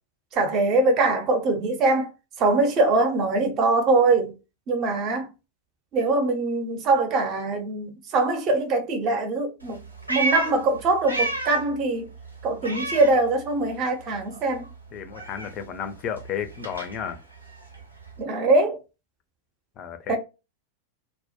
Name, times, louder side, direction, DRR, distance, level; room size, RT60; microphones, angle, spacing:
voice 1, 0.3-2.1 2.4-4.3 4.7-5.3 5.9-9.8 10.1-12.1 12.4-14.7 18.2-18.8 20.1-20.2, right 3 dB, 35° right, 0.6 m, -22 dB
Meow, 9.6-11.8 12.1-13.8 14.0-18.2, right 2 dB, 85° right, 0.7 m, -32 dB
voice 2, 14.9-17.2 19.8-20.2, left 8 dB, 35° left, 0.4 m, -33 dB
2.1 x 2.1 x 2.7 m
figure-of-eight pair, 90°, 0 cm